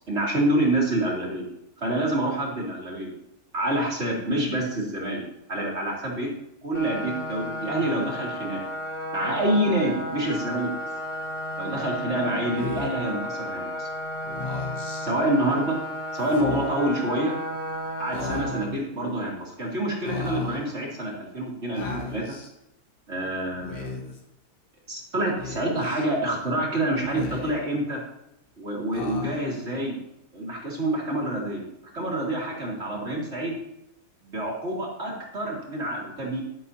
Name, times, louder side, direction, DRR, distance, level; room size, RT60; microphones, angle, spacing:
voice 1, 0.0-1.4 1.8-3.1 3.5-6.3 6.6-8.6 9.1-10.8 11.6-13.9 15.0-15.8 16.1-17.3 18.0-22.4 23.1-24.1 24.9-28.0 28.6-29.9 30.3-31.6 31.9-33.6 34.2-36.4, right 1 dB, 40° right, -3 dB, 3.5 m, -27 dB
sound 1, 6.7-18.6, equal, 30° left, 2.5 m, -33 dB
Speech, 12.5-13.1 14.2-15.0 16.2-16.9 18.1-18.8 20.0-20.7 21.7-22.5 23.5-24.2 25.4-26.0 27.0-27.8 28.9-29.6, left 3 dB, 90° left, 2.3 m, -35 dB
13.5 x 12.0 x 2.9 m, 0.85 s
omnidirectional pair, 1.7 m